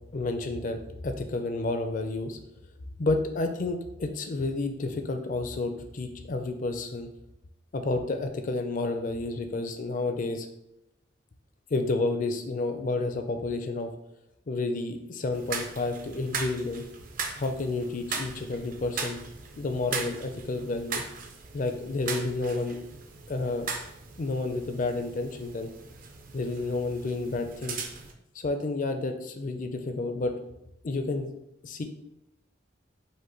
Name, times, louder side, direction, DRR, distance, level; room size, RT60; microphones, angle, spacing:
voice 1, 0.1-2.4 3.0-7.1 7.7-10.5 11.7-13.9 14.5-16.8 17.4-19.2 19.6-21.0 21.5-22.8 23.3-23.7 24.2-25.7 26.3-27.8 28.3-30.3 30.8-31.3 31.6-31.8, left 2 dB, 45° left, 6 dB, 0.4 m, -30 dB
sound 1, 15.3-28.1, right 5 dB, 45° right, 0.5 m, -39 dB
5.2 x 2.2 x 3.8 m, 0.84 s
head